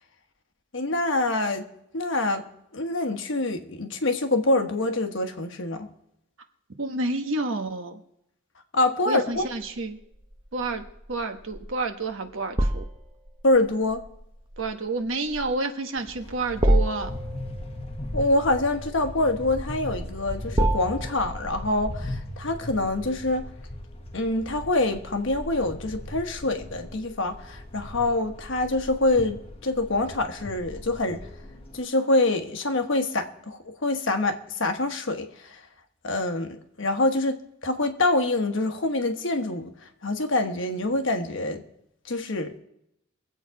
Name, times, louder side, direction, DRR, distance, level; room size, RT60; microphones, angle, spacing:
voice 1, 0.7-1.7 1.9-2.5 2.7-5.9 8.7-9.5 13.4-14.0 18.1-23.4 24.1-31.3 31.7-35.6 36.0-39.7 40.0-41.6 42.1-42.5, left 2 dB, 65° left, 1.2 m, -25 dB
voice 2, 6.8-8.0 9.1-10.0 10.5-10.8 11.1-12.8 14.6-17.2, right 3 dB, 70° right, 1.2 m, -29 dB
sound 1, 9.3-22.0, right 1 dB, 20° right, 0.8 m, -30 dB
sound 2, 16.0-31.8, left 1 dB, 30° left, 1.2 m, -38 dB
23.0 x 8.0 x 4.7 m
head